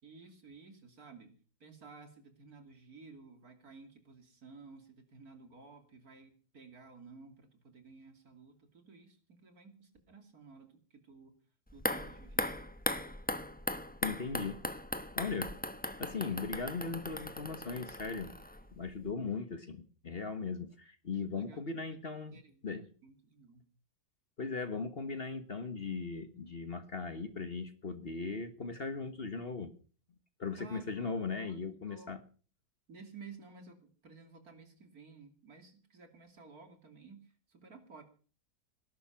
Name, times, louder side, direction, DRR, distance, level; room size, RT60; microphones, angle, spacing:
voice 1, 0.0-1.3 1.6-11.3 11.7-12.5 21.3-21.6 21.9-22.6 23.0-23.6 30.6-32.1 32.9-38.0, right 4 dB, 65° right, 6 dB, 3.2 m, -54 dB
sound 1, 11.7-18.8 19.1-19.2, left 1 dB, 5° left, 0.8 m, -38 dB
voice 2, 14.0-14.6 15.2-15.5 16.0-18.3 18.7-22.9 24.4-29.7 30.4-32.2, left 4 dB, 40° left, 10 dB, 1.4 m, -38 dB
19.0 x 11.5 x 5.8 m, 0.41 s
omnidirectional pair, 1.7 m